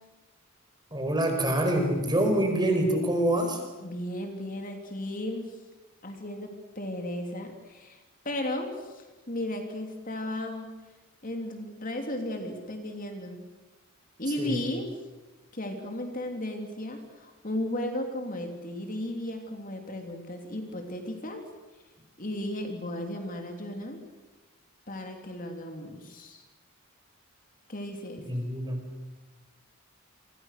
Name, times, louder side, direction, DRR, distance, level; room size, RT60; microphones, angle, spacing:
voice 1, 0.9-3.6 14.4-14.6 28.2-28.8, right 1 dB, 20° right, 4 dB, 5.0 m, -26 dB
voice 2, 3.8-5.6 6.0-8.0 8.2-10.7 11.2-13.4 14.2-15.0 15.5-21.4 22.2-24.0 24.9-26.4 27.7-28.2, left 1 dB, 40° left, 4 dB, 3.1 m, -35 dB
29.5 x 25.0 x 6.6 m, 1.1 s
head